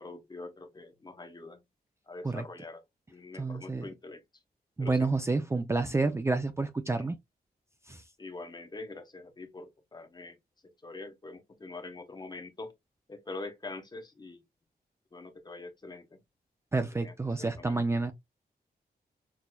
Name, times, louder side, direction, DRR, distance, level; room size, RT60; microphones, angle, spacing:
voice 1, 0.0-1.6 2.1-2.8 3.1-4.2 4.8-5.1 6.9-7.1 8.2-10.4 10.8-12.7 13.1-14.4 15.1-16.2 17.0-17.8, left 3 dB, 25° left, 1.0 m, -44 dB
voice 2, 3.4-3.8 4.8-7.2 7.9-8.0 16.7-18.1, right 3 dB, 15° right, 0.4 m, -29 dB
6.1 x 2.7 x 2.2 m
wide cardioid pair, 140°, 16 cm